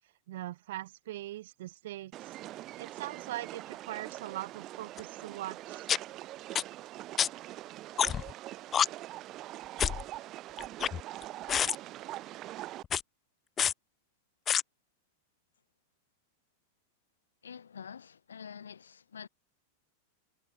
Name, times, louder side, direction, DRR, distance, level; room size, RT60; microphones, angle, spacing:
voice 1, 0.3-5.9, right 15 dB, 55° right, 1.1 m, -41 dB
sound 1, 2.1-12.8, right 15 dB, 35° right, 0.4 m, -43 dB
sound 2, 5.0-5.1 5.9-6.0 6.6-6.7 7.2-7.3 8.0-8.3 8.7-8.9 9.8-10.0 10.6-11.2 11.5-11.8 12.8-13.0 13.6-13.7 14.5-14.6, left 8 dB, 25° left, 0.5 m, -27 dB
voice 2, 17.4-19.3, left 7 dB, 70° left, 4.5 m, -47 dB
figure-of-eight pair, 90°, 0 cm